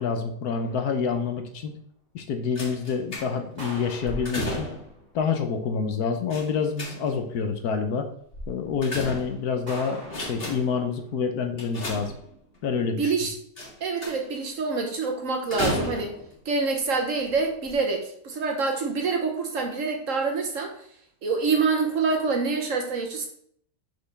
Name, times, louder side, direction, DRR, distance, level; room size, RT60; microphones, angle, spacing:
voice 1, 0.0-1.7 2.1-4.7 5.1-8.1 8.5-12.1 12.6-13.1, left 5 dB, 70° left, 6 dB, 1.2 m, -27 dB
sound 1, 0.6-1.5 3.6-5.1 9.7-11.2, equal, 25° right, 2.2 m, -44 dB
sound 2, 2.6-3.6 4.0-5.0 6.3-7.3 8.3-9.6 10.0-10.8 11.6-12.6 13.6-14.4 15.5-16.3 17.2-17.3 17.6-17.7, left 1 dB, 35° left, 2.2 m, -33 dB
voice 2, 13.0-13.3 13.8-16.2 16.4-20.8 21.2-23.3, right 4 dB, 55° right, 3 dB, 1.2 m, -26 dB
6.1 x 5.3 x 3.4 m, 0.64 s
omnidirectional pair, 1.8 m